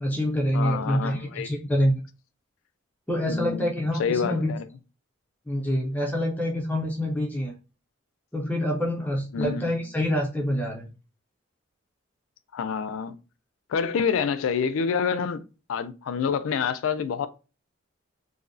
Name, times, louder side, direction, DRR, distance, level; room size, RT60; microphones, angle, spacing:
voice 1, 0.0-2.0 3.1-4.5 5.5-7.5 8.3-10.9, equal, 10° left, 0.4 m, -26 dB
voice 2, 0.5-1.5 3.3-4.6 9.3-9.9 12.5-13.2 13.7-15.4 15.7-17.3, left 6 dB, 85° left, 0.3 m, -27 dB
2.5 x 2.0 x 2.5 m
head